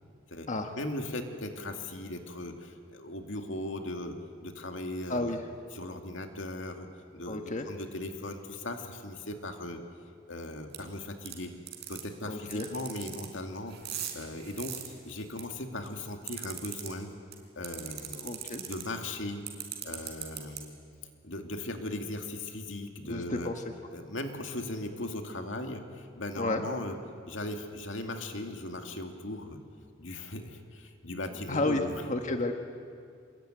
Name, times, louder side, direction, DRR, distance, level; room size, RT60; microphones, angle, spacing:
voice 1, 0.8-5.3 5.7-9.8 10.3-11.5 11.9-13.8 14.1-17.1 17.6-18.3 18.7-19.4 19.8-20.7 21.2-23.5 23.9-27.0 27.3-29.6 30.0-32.0, left 1 dB, 80° left, 4 dB, 2.4 m, -38 dB
voice 2, 5.1-5.4 7.3-7.7 12.2-12.7 18.1-18.6 23.0-23.6 26.4-26.6 31.5-32.5, left 2 dB, 40° left, 4 dB, 1.4 m, -31 dB
sound 1, 10.7-10.8 11.3-11.4 11.7-12.0 12.5-13.3 13.7-15.4 15.9-16.9 17.3-17.4 17.6-18.8 19.5-20.6, right 12 dB, 60° right, 4.6 m, -38 dB
26.5 x 22.0 x 9.3 m, 2.2 s
head